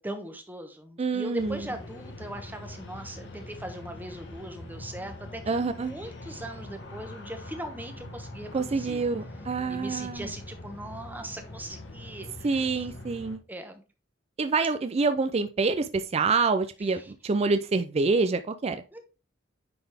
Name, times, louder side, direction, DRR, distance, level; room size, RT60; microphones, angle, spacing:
voice 1, 0.0-9.0 9.7-12.7 13.5-13.8 16.9-17.1 18.9-19.0, right 1 dB, 10° right, 5 dB, 1.1 m, -40 dB
voice 2, 1.0-1.6 5.5-5.9 8.5-10.3 12.4-13.4 14.4-18.8, right 4 dB, 30° right, 9 dB, 0.4 m, -26 dB
sound 1, 1.4-13.4, left 1 dB, 65° left, 1.4 m, -43 dB
9.3 x 4.0 x 3.4 m, 0.32 s
head